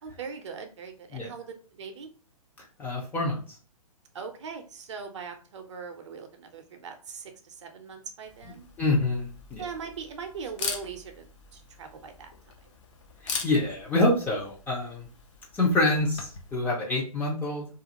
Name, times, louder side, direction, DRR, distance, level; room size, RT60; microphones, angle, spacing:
voice 1, 0.0-2.1 4.1-8.7 9.6-11.3 11.5-12.3, right 5 dB, 50° right, 6 dB, 0.6 m, -40 dB
voice 2, 2.8-3.4 8.8-9.6 13.2-15.1 15.5-17.7, left 2 dB, 10° left, -3 dB, 0.5 m, -26 dB
Camera, 8.2-16.6, left 5 dB, 50° left, 0.7 m, -41 dB
2.5 x 2.4 x 2.8 m, 0.37 s
figure-of-eight pair, 130°, 19 cm